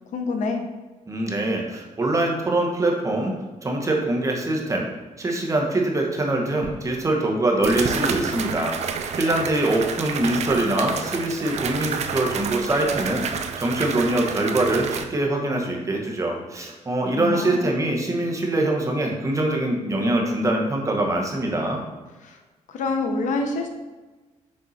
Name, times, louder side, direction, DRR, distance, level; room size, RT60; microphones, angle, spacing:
voice 1, 0.1-0.6 17.1-17.7 22.2-22.4 22.7-23.7, left 3 dB, 75° left, 4 dB, 0.9 m, -26 dB
voice 2, 1.1-3.3 3.6-4.9 5.2-21.8, right 1 dB, 25° right, 1 dB, 1.1 m, -24 dB
sound 1, 6.6-6.7 7.6-15.0, right 6 dB, 55° right, 0.6 m, -29 dB
6.5 x 4.6 x 4.2 m, 1.2 s
cardioid pair, 130°, 13 cm